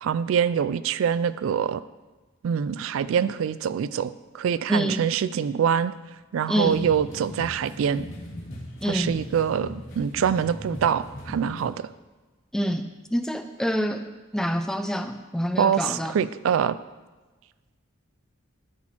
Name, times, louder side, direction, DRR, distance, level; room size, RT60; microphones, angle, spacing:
voice 1, 0.0-1.8 2.4-5.9 6.3-8.1 8.8-11.9 15.6-16.8, right 7 dB, 85° right, 15 dB, 0.3 m, -25 dB
voice 2, 4.7-5.0 6.5-6.8 8.8-9.1 12.5-14.0 14.3-16.1, equal, 5° left, 7 dB, 0.3 m, -26 dB
sound 1, 6.6-11.6, equal, 80° left, 2.1 m, -39 dB
12.5 x 4.4 x 4.3 m, 1.2 s
head